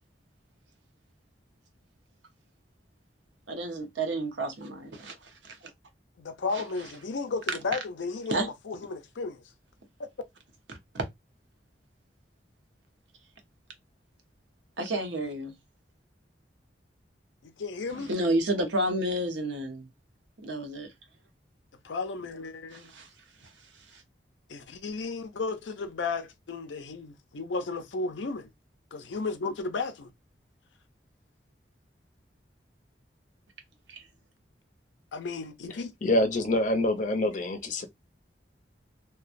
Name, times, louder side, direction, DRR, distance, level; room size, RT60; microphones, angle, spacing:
voice 1, 3.5-5.7 8.3-8.5 10.7-11.0 14.8-15.5 17.9-19.9 20.4-20.9 22.7-23.1 23.4-24.0 33.9-34.1, right 1 dB, 85° right, 0.8 m, -31 dB
voice 2, 6.2-9.4 10.0-10.1 17.4-18.1 21.8-22.9 24.5-28.5 28.9-30.1 35.1-35.9, left 4 dB, 90° left, 0.5 m, -34 dB
voice 3, 36.0-37.9, left 1 dB, 45° left, 0.5 m, -26 dB
2.9 x 2.2 x 2.5 m
head